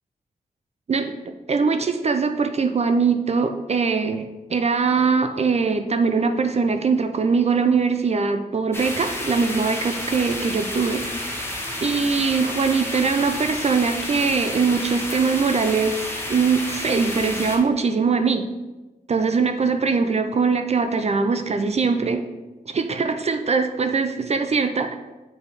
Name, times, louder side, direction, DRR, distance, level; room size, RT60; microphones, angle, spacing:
voice 1, 1.5-11.1 11.8-18.4 19.1-22.2 22.7-25.0, right 5 dB, 45° right, 7 dB, 0.4 m, -22 dB
sound 1, 8.7-17.6, left 1 dB, 15° left, 1.0 m, -30 dB
6.9 x 3.4 x 4.1 m, 1.1 s
wide cardioid pair, 105°, 15 cm